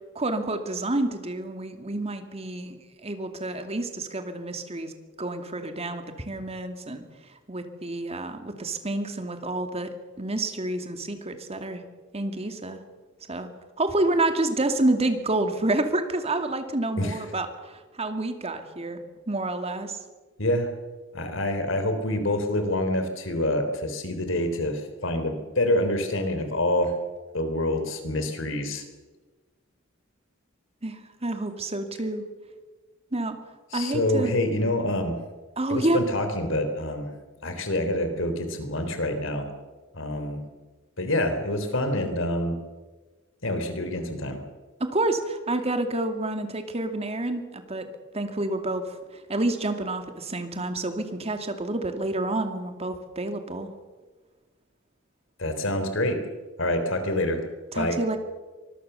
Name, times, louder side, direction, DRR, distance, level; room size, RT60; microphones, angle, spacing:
voice 1, 0.1-4.9 5.2-7.0 7.5-9.9 10.2-11.8 12.1-12.8 13.3-13.5 13.8-19.0 19.3-20.0 30.8-32.2 33.1-33.4 33.7-34.3 35.6-36.0 44.8-47.9 48.1-49.0 49.3-53.7 57.7-58.2, right 2 dB, 30° right, 7 dB, 2.5 m, -28 dB
voice 2, 20.4-20.7 21.1-26.9 27.3-28.8 33.7-35.2 35.7-37.1 37.4-39.5 39.9-40.4 41.0-42.6 43.4-44.4 55.4-56.2 56.6-57.4 57.7-58.0, left 1 dB, 70° left, 7 dB, 3.6 m, -26 dB
24.5 x 21.0 x 7.0 m, 1.3 s
head